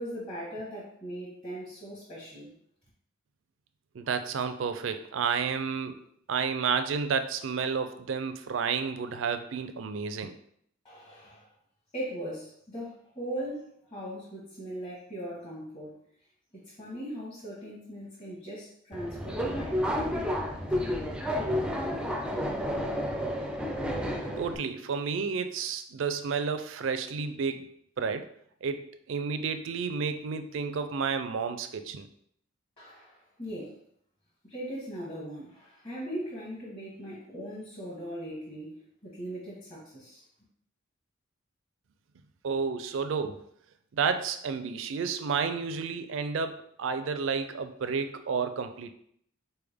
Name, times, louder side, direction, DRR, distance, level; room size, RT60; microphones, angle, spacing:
voice 1, 0.0-2.5 10.8-11.5 11.9-16.0 16.5-20.6 32.8-33.8 34.4-40.2, equal, 30° left, -8 dB, 1.2 m, -39 dB
voice 2, 3.9-6.0 6.3-10.4 24.4-28.3 28.6-32.1 42.4-43.4 43.9-48.9, right 5 dB, 70° right, 9 dB, 0.4 m, -31 dB
Subway metro underground, 18.9-24.6, equal, 5° right, 0.4 m, -31 dB
4.2 x 3.5 x 3.4 m, 0.68 s
head